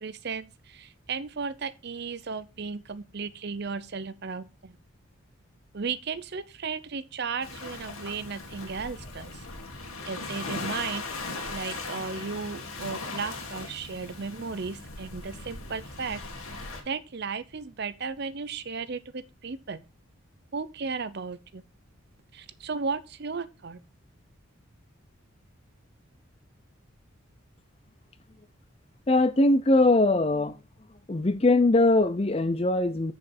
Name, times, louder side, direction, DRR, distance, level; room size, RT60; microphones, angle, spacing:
voice 1, 0.0-4.8 5.7-9.5 10.0-11.2 11.5-19.8 20.5-21.6 22.3-23.8, right 5 dB, 50° right, 0.6 m, -35 dB
Waves surf, 7.4-16.8, left 3 dB, 80° left, 2.2 m, -38 dB
voice 2, 29.1-30.6 31.1-33.1, left 2 dB, 30° left, 0.5 m, -21 dB
7.6 x 6.9 x 4.3 m
head